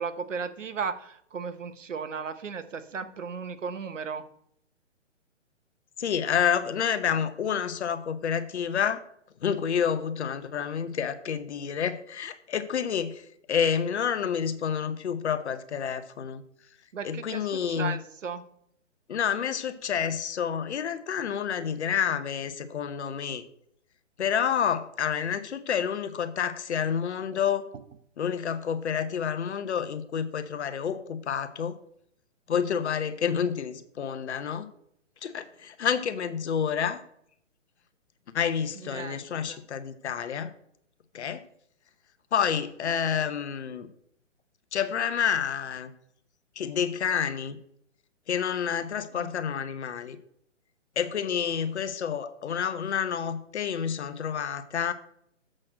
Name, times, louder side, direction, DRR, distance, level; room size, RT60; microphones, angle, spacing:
voice 1, 0.0-4.2 16.9-18.4 38.8-39.6 49.1-49.3, right 6 dB, 80° right, 12 dB, 1.0 m, -35 dB
voice 2, 6.0-9.0 9.4-16.4 17.0-18.0 19.1-23.4 24.2-27.6 28.2-31.8 32.5-34.7 35.2-37.0 38.3-40.5 41.1-41.4 42.3-43.9 44.7-45.9 46.6-47.6 48.3-50.2 51.0-54.9, left 7 dB, 60° left, 11 dB, 0.9 m, -29 dB
7.5 x 4.3 x 6.3 m, 0.70 s
hypercardioid pair, 140°, 37 cm